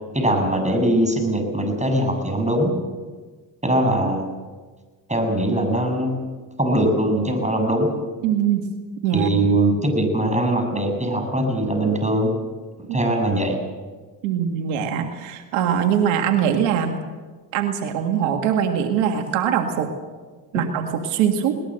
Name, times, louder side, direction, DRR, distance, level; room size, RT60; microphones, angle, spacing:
voice 1, 0.0-2.8 3.6-4.3 5.1-7.9 9.1-12.3 12.9-13.6, right 1 dB, 15° right, 5 dB, 7.2 m, -21 dB
voice 2, 8.2-8.6 9.0-9.4 12.9-13.0 14.2-17.0 17.5-19.9 20.5-21.5, right 8 dB, 85° right, 5 dB, 2.0 m, -22 dB
21.0 x 19.5 x 7.7 m, 1.4 s
supercardioid pair, 60°, 47 cm